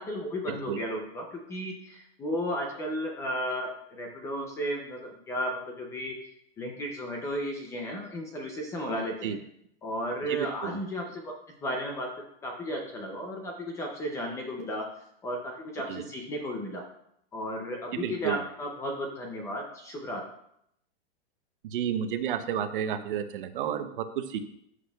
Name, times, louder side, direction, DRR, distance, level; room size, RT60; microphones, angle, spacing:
voice 1, 0.0-6.2 6.6-9.4 9.8-11.3 11.6-12.1 12.4-14.9 15.2-16.8 17.3-20.2, equal, 10° left, 2 dB, 0.5 m, -34 dB
voice 2, 10.3-10.8 15.9-16.0 17.9-18.4 21.6-24.4, right 9 dB, 55° right, 9 dB, 0.8 m, -31 dB
13.0 x 6.3 x 2.3 m, 0.74 s
supercardioid pair, 160°, 32 cm